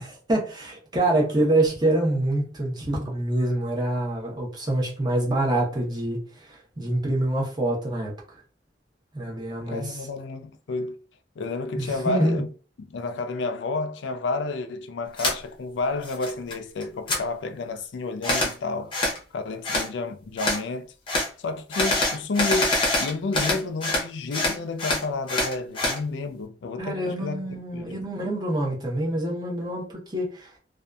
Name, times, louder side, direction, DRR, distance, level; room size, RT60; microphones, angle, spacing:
voice 1, 0.0-8.1 9.1-10.0 11.8-12.4 26.8-30.5, right 1 dB, 20° right, 0.8 m, -26 dB
voice 2, 9.7-11.0 11.4-12.5 12.8-18.9 19.3-20.9 21.4-27.4 27.7-28.0, left 3 dB, 75° left, 0.4 m, -30 dB
sound 1, 15.2-15.4 15.8-16.5 16.8-17.2 18.2-18.5 18.9-19.2 19.6-19.9 20.4-20.6 21.1-21.3 21.7-24.1 24.3-26.0, left 2 dB, 25° left, 0.7 m, -25 dB
2.6 x 2.3 x 2.2 m
head